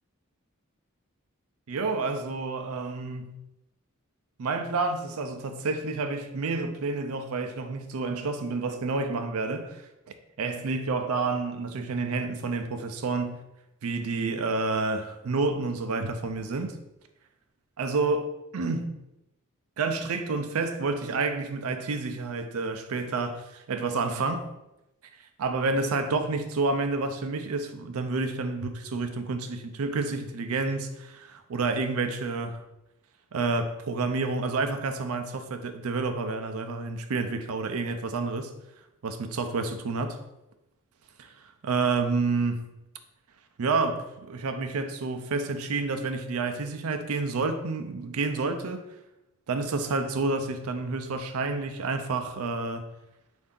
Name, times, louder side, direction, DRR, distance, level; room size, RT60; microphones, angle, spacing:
voice 1, 1.7-3.4 4.4-9.8 10.4-13.4 13.8-16.8 17.8-19.0 19.8-24.5 25.4-32.6 33.3-38.5 39.0-40.2 41.2-42.7 43.6-48.8 49.5-52.8, right 3 dB, 85° right, 7 dB, 0.5 m, -29 dB
4.4 x 2.6 x 3.7 m, 0.92 s
head